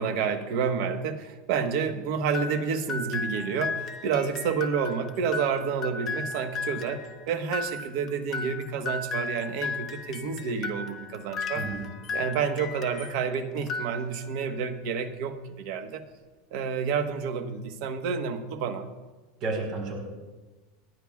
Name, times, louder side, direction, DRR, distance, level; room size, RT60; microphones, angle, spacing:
voice 1, 0.0-11.6 12.1-16.1 16.5-18.9, right 6 dB, 60° right, 8 dB, 1.2 m, -29 dB
sound 1, 2.3-13.2 13.6-14.4, left 4 dB, 30° left, 1.0 m, -35 dB
voice 2, 11.5-11.9 19.4-20.0, right 3 dB, 40° right, 1 dB, 4.1 m, -31 dB
28.5 x 11.0 x 2.4 m, 1.2 s
supercardioid pair, 150°, 0 cm